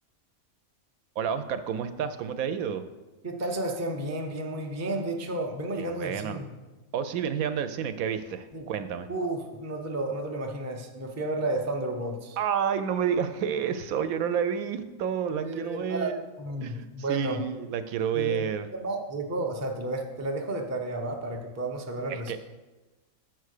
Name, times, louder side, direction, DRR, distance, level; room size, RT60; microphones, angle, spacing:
voice 1, 1.2-2.8 5.8-6.4 6.9-9.1 12.4-16.2 16.6-18.7 22.1-22.4, right 8 dB, 80° right, 10 dB, 1.0 m, -30 dB
voice 2, 3.2-6.5 8.5-8.7 9.1-12.4 15.4-16.1 16.4-17.4 18.1-18.4 18.7-22.3, right 2 dB, 20° right, 3 dB, 0.4 m, -32 dB
6.3 x 4.7 x 6.5 m, 1.2 s
omnidirectional pair, 1.5 m